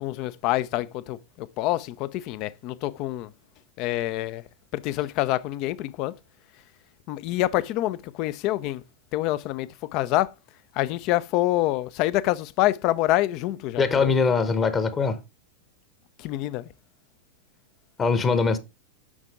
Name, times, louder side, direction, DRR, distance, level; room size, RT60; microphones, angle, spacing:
voice 1, 0.0-3.3 3.8-4.4 4.7-6.1 7.1-8.8 9.1-10.3 10.8-14.1 16.2-16.6, left 16 dB, 40° left, 0.5 m, -26 dB
voice 2, 13.8-15.2 18.0-18.6, left 4 dB, 20° left, 0.9 m, -22 dB
7.2 x 5.9 x 3.6 m
figure-of-eight pair, 90°, 0 cm